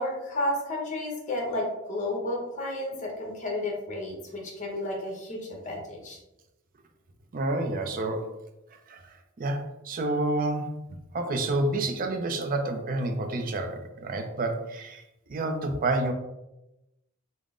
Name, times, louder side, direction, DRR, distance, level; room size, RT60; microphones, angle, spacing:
voice 1, 0.0-6.2, left 1 dB, 35° left, -1 dB, 0.9 m, -32 dB
voice 2, 7.3-8.4 8.9-10.8 11.1-15.0 15.3-16.1, right 2 dB, 40° right, 6 dB, 0.4 m, -29 dB
3.7 x 2.0 x 3.6 m, 0.93 s
head